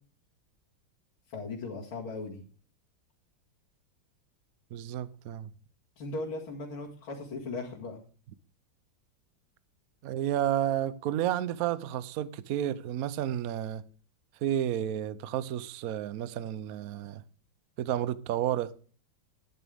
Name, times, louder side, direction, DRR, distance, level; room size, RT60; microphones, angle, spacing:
voice 1, 1.3-2.4 6.0-8.0, left 3 dB, 65° left, 2.9 m, -37 dB
voice 2, 4.7-5.5 10.0-13.8 14.4-17.2 17.8-18.7, right 11 dB, 90° right, 0.7 m, -31 dB
12.5 x 10.5 x 3.5 m
omnidirectional pair, 2.4 m